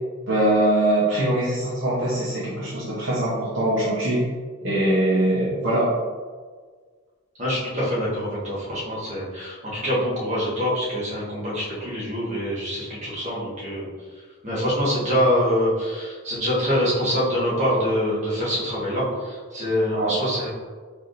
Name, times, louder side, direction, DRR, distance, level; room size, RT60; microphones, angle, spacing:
voice 1, 0.3-4.3 4.6-5.9 19.9-20.1, right 1 dB, 55° right, -8 dB, 0.9 m, -22 dB
voice 2, 7.4-13.9 14.4-20.5, equal, 30° right, -8 dB, 1.4 m, -25 dB
4.3 x 3.5 x 2.5 m, 1.5 s
head